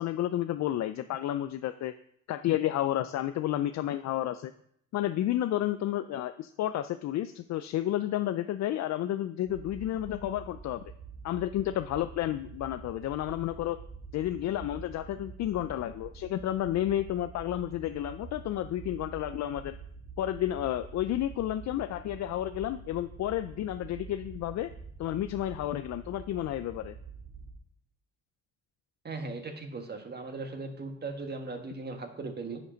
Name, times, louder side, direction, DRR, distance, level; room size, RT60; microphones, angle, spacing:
voice 1, 0.0-2.0 2.3-4.5 4.9-10.9 11.2-13.8 14.1-19.8 20.2-24.7 25.0-26.9, left 12 dB, 65° left, 11 dB, 0.4 m, -31 dB
sound 1, 9.5-27.5, right 4 dB, 75° right, 2.6 m, -47 dB
voice 2, 29.0-32.6, right 3 dB, 35° right, 5 dB, 1.5 m, -38 dB
9.6 x 5.3 x 5.1 m, 0.69 s
cardioid pair, 90°, 30 cm